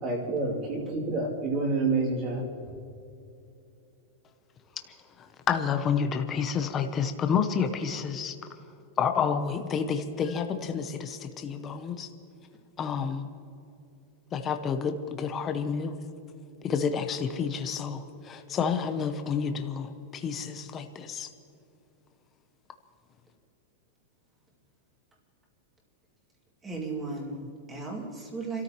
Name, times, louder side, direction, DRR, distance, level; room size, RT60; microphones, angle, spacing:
voice 1, 0.0-2.5, right 3 dB, 25° right, -2 dB, 2.7 m, -28 dB
voice 2, 5.2-8.3 9.0-12.1 12.8-13.3 14.3-16.0 16.6-21.3, left 6 dB, 15° left, 7 dB, 0.7 m, -29 dB
voice 3, 26.6-28.6, right 3 dB, 10° right, -1 dB, 2.4 m, -35 dB
30.0 x 13.5 x 3.0 m, 2.7 s
supercardioid pair, 180°, 0 cm